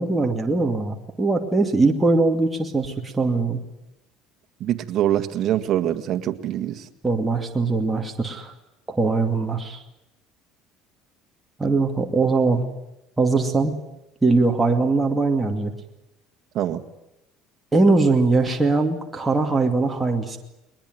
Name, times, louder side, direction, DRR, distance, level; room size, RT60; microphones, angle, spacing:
voice 1, 0.0-3.6 7.0-8.5 8.9-9.8 11.6-12.6 13.2-13.8 14.2-15.7 17.7-20.4, right 3 dB, 10° right, 2 dB, 2.4 m, -21 dB
voice 2, 4.6-6.8 16.5-16.8, right 11 dB, 50° right, 8 dB, 1.8 m, -24 dB
21.5 x 20.5 x 9.4 m, 0.92 s
cardioid pair, 115°, 0 cm